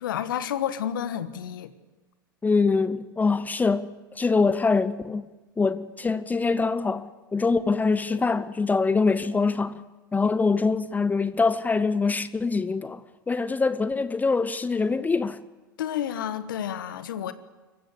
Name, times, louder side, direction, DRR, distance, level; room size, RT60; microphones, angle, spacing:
voice 1, 0.0-1.7 15.8-17.3, left 10 dB, 75° left, 1.4 m, -30 dB
voice 2, 2.4-5.3 5.6-9.8 10.1-13.0 13.3-15.4, left 4 dB, 15° left, 0.7 m, -24 dB
26.0 x 15.0 x 8.4 m
hypercardioid pair, 95°, 11 cm